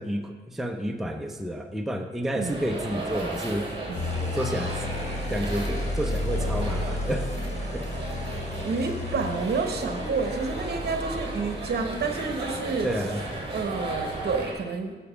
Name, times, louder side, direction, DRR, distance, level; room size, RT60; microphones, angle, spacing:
voice 1, 0.0-3.7 4.3-4.8 5.3-7.3 7.7-7.9 12.8-13.2, equal, ahead, 4 dB, 0.5 m, -30 dB
sound 1, 2.4-14.5, right 2 dB, 30° right, 1.9 m, -35 dB
sound 2, 3.9-13.1, left 2 dB, 40° left, 0.8 m, -33 dB
voice 2, 8.6-12.9 13.5-14.9, right 4 dB, 60° right, 5 dB, 0.9 m, -29 dB
7.0 x 6.9 x 5.0 m, 1.4 s
wide cardioid pair, 120°, 19 cm